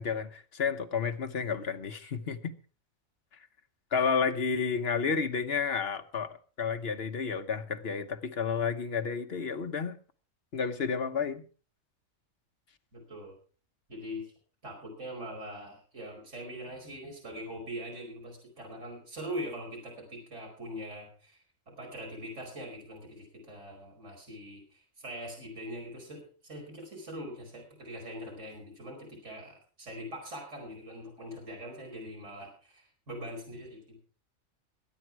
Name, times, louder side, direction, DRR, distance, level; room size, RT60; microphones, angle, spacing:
voice 1, 0.0-2.5 3.9-10.0 10.5-11.4, left 6 dB, 50° left, 1.3 m, -31 dB
voice 2, 12.9-13.3 13.9-14.3 14.6-34.0, equal, 60° right, 5.4 m, -42 dB
22.0 x 9.2 x 4.7 m
omnidirectional pair, 1.4 m